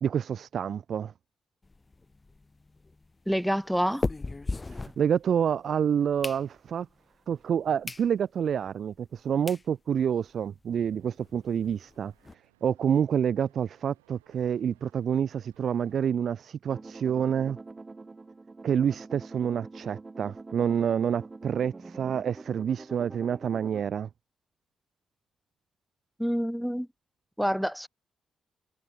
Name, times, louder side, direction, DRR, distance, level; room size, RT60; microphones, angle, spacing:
voice 1, 0.0-1.1 5.0-6.9 7.3-12.1 12.6-17.6 18.6-24.1, right 8 dB, 60° right, 0.3 m, -28 dB
sound 1, 1.6-5.6 6.0-6.9 7.4-7.5 7.8-8.1 8.5-8.6 9.2-9.3 9.5-9.7 10.1-10.2 10.4-10.5 10.8-10.9 11.2-12.3, left 3 dB, 30° left, 1.9 m, -37 dB
voice 2, 3.3-4.1 26.2-26.9 27.4-27.9, equal, ahead, 1.4 m, -27 dB
sound 2, 10.8-16.0, right 21 dB, 90° right, 5.2 m, -66 dB
sound 3, 16.7-23.8, right 3 dB, 30° right, 3.6 m, -45 dB
hypercardioid pair, 45°, 0 cm